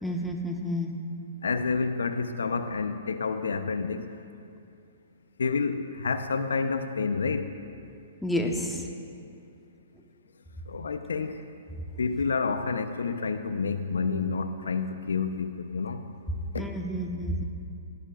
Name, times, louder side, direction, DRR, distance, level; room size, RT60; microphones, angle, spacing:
voice 1, 0.0-0.9 8.2-8.9 16.6-17.4, equal, 5° left, 1 dB, 1.3 m, -30 dB
voice 2, 1.4-4.0 5.4-7.5 10.7-11.5 12.0-16.0 16.5-16.6, left 4 dB, 80° left, 9 dB, 0.8 m, -29 dB
21.5 x 13.5 x 2.5 m, 2.5 s
hypercardioid pair, 130°, 0 cm